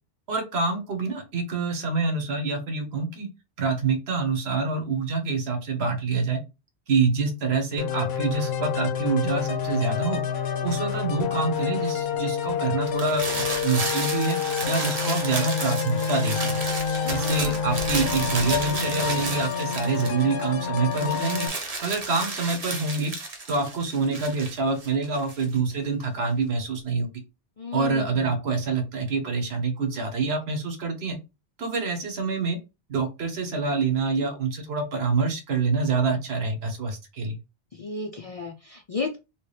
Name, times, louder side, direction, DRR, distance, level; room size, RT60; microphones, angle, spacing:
voice 1, 0.3-3.3 3.6-6.4 6.9-10.2 10.6-14.4 14.7-16.6 17.1-21.5 21.8-23.1 23.5-27.1 27.7-31.2 31.6-32.6 32.9-37.4, right 4 dB, 70° right, 5 dB, 1.1 m, -26 dB
sound 1, 7.8-21.5, left 7 dB, 75° left, 0.8 m, -28 dB
sound 2, 12.9-20.4 20.8-25.6, right 3 dB, 40° right, 0.7 m, -32 dB
voice 2, 16.9-17.6 27.6-28.2 37.7-39.2, left 4 dB, 50° left, 1 dB, 0.4 m, -33 dB
3.0 x 2.9 x 3.2 m, 0.27 s
omnidirectional pair, 1.1 m